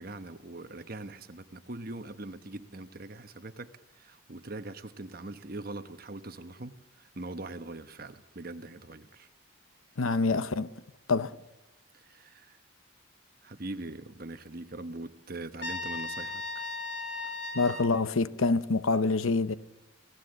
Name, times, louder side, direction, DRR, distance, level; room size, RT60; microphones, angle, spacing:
voice 1, 0.0-9.3 11.9-12.6 13.4-16.8, right 2 dB, 45° right, 1.1 m, -42 dB
voice 2, 10.0-10.7 11.1-11.4 17.5-19.5, left 3 dB, 80° left, 0.8 m, -26 dB
Trumpet, 15.6-17.9, left 2 dB, 55° left, 3.4 m, -36 dB
28.0 x 17.5 x 7.9 m
head